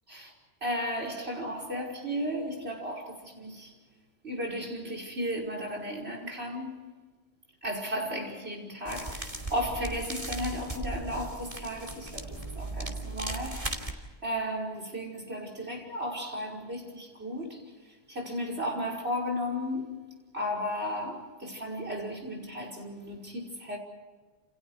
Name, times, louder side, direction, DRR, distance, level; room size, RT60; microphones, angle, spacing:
voice 1, 0.6-3.7 4.2-6.8 7.6-13.9 14.2-19.9 20.3-23.8, equal, 85° right, 5.8 m, -34 dB
sound 1, 8.9-13.9, right 2 dB, 35° right, 2.9 m, -37 dB
29.0 x 29.0 x 4.8 m
omnidirectional pair, 1.1 m